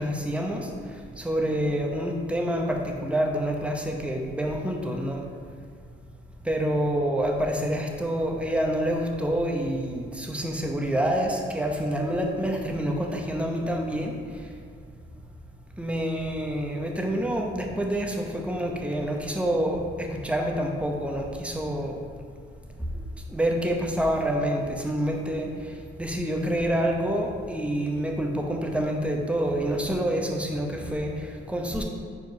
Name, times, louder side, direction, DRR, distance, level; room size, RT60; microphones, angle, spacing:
voice 1, 0.0-5.2 6.4-14.5 15.8-22.0 22.8-31.8, equal, 5° right, 1 dB, 0.9 m, -27 dB
4.7 x 4.4 x 5.4 m, 2.1 s
cardioid pair, 90°, 20 cm